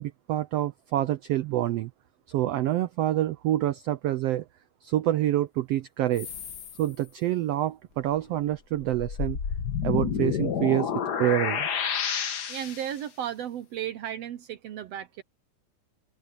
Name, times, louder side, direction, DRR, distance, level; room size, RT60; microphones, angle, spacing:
voice 1, 0.0-1.9 2.3-4.4 4.8-6.3 6.8-9.4 9.8-10.9 11.2-11.7, right 13 dB, 90° right, 1.4 m, -27 dB
sound 1, 6.1-6.8 8.1-8.2 8.8-12.9, left 7 dB, 60° left, 1.0 m, -30 dB
voice 2, 12.5-15.2, right 10 dB, 70° right, 1.6 m, -34 dB
open air
omnidirectional pair, 3.6 m